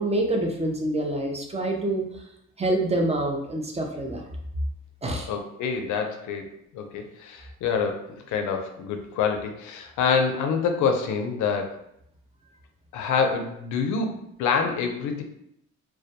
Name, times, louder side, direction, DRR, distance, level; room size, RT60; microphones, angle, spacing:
voice 1, 0.0-2.2 2.6-4.2 5.0-5.3, right 1 dB, 20° right, 1 dB, 0.4 m, -26 dB
voice 2, 5.3-6.5 6.7-11.8 12.9-15.2, left 5 dB, 75° left, 5 dB, 0.5 m, -26 dB
2.2 x 2.1 x 2.7 m, 0.75 s
cardioid pair, 90°, 30 cm